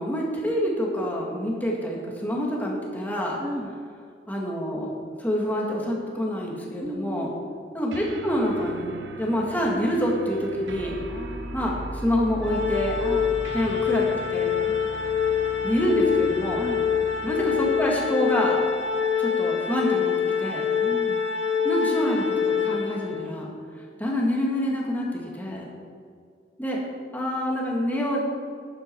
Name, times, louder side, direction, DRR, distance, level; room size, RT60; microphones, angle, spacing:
voice 1, 0.0-3.4 4.3-7.3 7.7-11.0 11.5-11.8 12.0-13.0 13.5-14.0 14.3-14.5 15.6-16.6 17.2-18.6 19.2-20.1 20.4-20.6 21.6-23.5 24.0-25.7 26.6-26.8 27.1-28.2, equal, 10° left, -2 dB, 2.0 m, -26 dB
voice 2, 3.4-3.7 6.8-7.3 11.1-11.8 13.0-13.2 14.7-14.9 16.6-16.9 20.8-21.2, equal, 15° right, 0 dB, 0.7 m, -35 dB
sound 1, 7.9-18.2, right 1 dB, 75° right, 0.9 m, -38 dB
Organ, 12.4-23.3, left 7 dB, 75° left, 1.3 m, -25 dB
11.5 x 9.2 x 4.7 m, 2.2 s
head